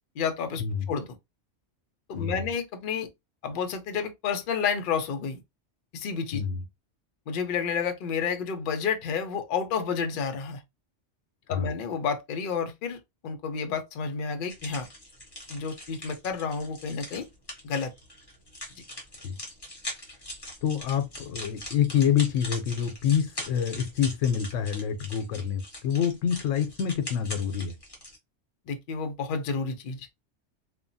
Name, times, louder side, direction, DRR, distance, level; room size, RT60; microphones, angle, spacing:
voice 1, 0.2-0.6 0.9-1.1 2.1-3.1 3.4-5.4 5.9-6.4 7.3-10.6 11.5-13.0 13.2-14.9 15.5-17.3 17.6-17.9 28.7-30.1, left 6 dB, 55° left, 0.6 m, -30 dB
sound 1, 14.5-28.2, left 1 dB, 25° left, 0.8 m, -42 dB
voice 2, 20.6-27.7, left 8 dB, 85° left, 0.9 m, -27 dB
2.8 x 2.2 x 2.6 m
omnidirectional pair, 1.2 m